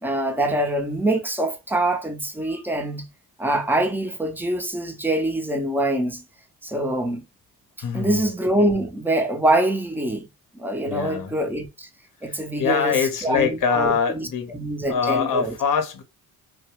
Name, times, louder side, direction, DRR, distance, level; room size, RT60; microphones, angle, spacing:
voice 1, 0.0-3.1 3.4-6.2 6.6-7.2 7.9-10.3 10.6-11.9 12.2-15.6, right 1 dB, 5° right, 0.6 m, -24 dB
voice 2, 7.8-8.3 10.9-11.4 12.3-14.5 14.9-16.0, left 6 dB, 55° left, 0.7 m, -24 dB
2.3 x 2.0 x 3.0 m
cardioid pair, 60°, 40 cm